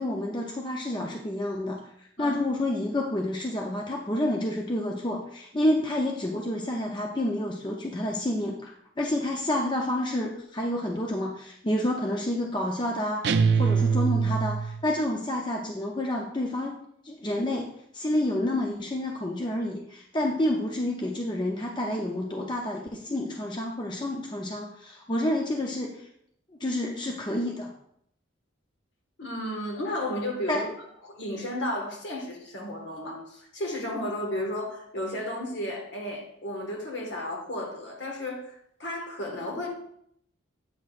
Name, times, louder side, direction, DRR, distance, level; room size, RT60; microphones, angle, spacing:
voice 1, 0.0-13.3 13.6-16.8 17.0-17.7 17.9-26.1 26.6-27.7 30.5-30.7, left 1 dB, 25° left, 0 dB, 0.5 m, -29 dB
sound 1, 13.2-14.9, right 5 dB, 60° right, 0.4 m, -23 dB
voice 2, 29.2-30.7 31.0-38.5 38.8-39.7, left 1 dB, 65° left, 0 dB, 1.5 m, -33 dB
8.5 x 5.9 x 2.4 m, 0.72 s
head